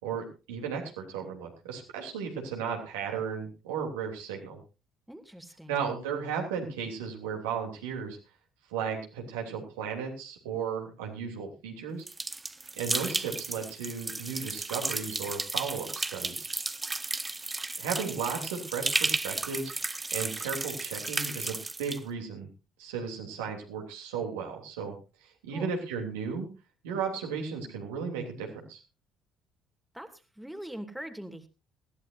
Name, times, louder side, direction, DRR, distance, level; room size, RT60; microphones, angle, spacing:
voice 1, 0.0-4.6 5.7-8.2 8.7-12.0 12.8-16.5 17.8-19.7 20.1-22.5 22.8-24.9 25.4-26.5 26.8-28.8, right 6 dB, 75° right, 2 dB, 3.0 m, -35 dB
voice 2, 5.1-5.8 25.5-25.7 29.9-30.1 30.4-31.5, right 1 dB, 5° right, 7 dB, 2.5 m, -42 dB
sound 1, 12.1-22.0, right 3 dB, 20° right, 1.0 m, -33 dB
20.0 x 14.5 x 2.6 m, 0.29 s
hypercardioid pair, 55°, 0 cm